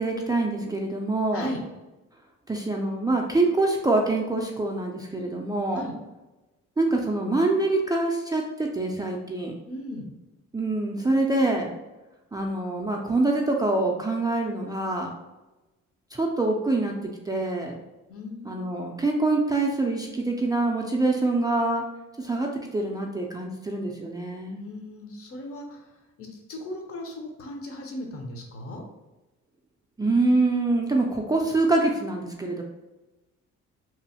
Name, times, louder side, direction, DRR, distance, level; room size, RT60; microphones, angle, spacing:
voice 1, 0.0-1.5 2.5-5.9 6.8-9.5 10.5-11.7 12.3-15.1 16.1-16.9 17.3-17.7 18.4-21.8 22.2-24.6 30.0-32.6, right 2 dB, 15° right, -1 dB, 0.3 m, -25 dB
voice 2, 9.7-10.1 18.1-18.9 24.6-25.9 26.2-28.8, left 1 dB, 50° left, 2 dB, 0.7 m, -37 dB
3.0 x 2.0 x 2.8 m, 1.1 s
cardioid pair, 90°, 30 cm